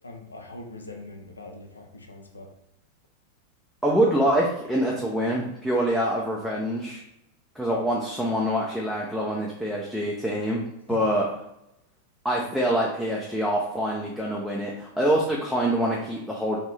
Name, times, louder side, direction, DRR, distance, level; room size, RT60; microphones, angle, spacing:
voice 1, 0.0-2.5 10.9-11.0, left 2 dB, 80° left, 3 dB, 0.4 m, -42 dB
voice 2, 3.8-7.0 7.6-11.2 12.2-16.6, right 1 dB, ahead, -3 dB, 0.5 m, -25 dB
2.8 x 2.5 x 3.3 m, 0.85 s
figure-of-eight pair, 90°, 0 cm